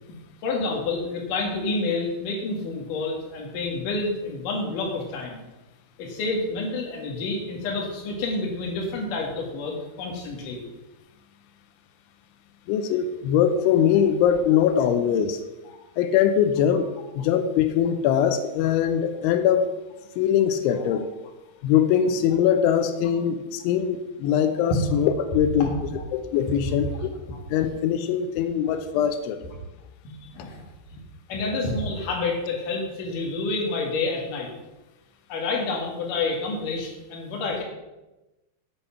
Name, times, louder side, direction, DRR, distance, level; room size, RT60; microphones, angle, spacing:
voice 1, 0.4-5.5 6.0-10.6 15.7-15.8 20.7-21.0 24.2-24.4 25.6-26.0 26.6-27.0 27.3-27.4 28.6-28.7 30.2-30.6 30.9-31.0 31.3-34.5 35.3-37.6, left 3 dB, 55° left, 0 dB, 3.0 m, -29 dB
voice 2, 12.7-15.4 16.0-19.7 20.2-21.1 21.6-25.7 26.1-27.1 27.5-29.4, left 9 dB, 90° left, 8 dB, 3.1 m, -22 dB
11.0 x 7.1 x 5.8 m, 1.0 s
omnidirectional pair, 5.4 m